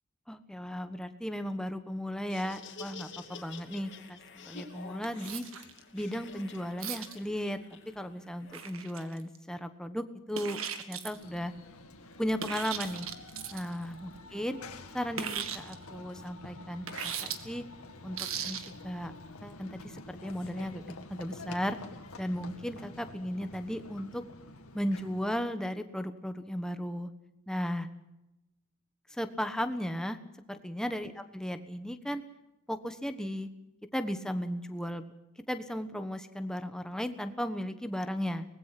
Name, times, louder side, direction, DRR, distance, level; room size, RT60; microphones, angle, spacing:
voice 1, 0.3-5.4 5.9-7.6 7.9-10.6 10.9-11.5 12.2-13.1 13.5-14.6 14.9-17.6 18.0-19.1 19.4-21.8 22.2-24.2 24.7-27.1 27.5-27.9 29.1-30.2 30.5-32.2 32.7-33.5 33.9-35.1 35.5-38.5, equal, 5° left, 8 dB, 1.2 m, -35 dB
Laughter, 2.1-8.7, left 4 dB, 55° left, 2.7 m, -49 dB
sound 1, 5.0-5.8 6.8-7.2 8.5-9.4 10.3-11.2 12.4-13.7 15.2-15.7 16.9-17.4 18.1-18.7, right 8 dB, 65° right, 1.9 m, -37 dB
Run / Train, 11.1-25.5, left 2 dB, 80° left, 2.2 m, -48 dB
24.5 x 20.0 x 6.0 m, 0.95 s
head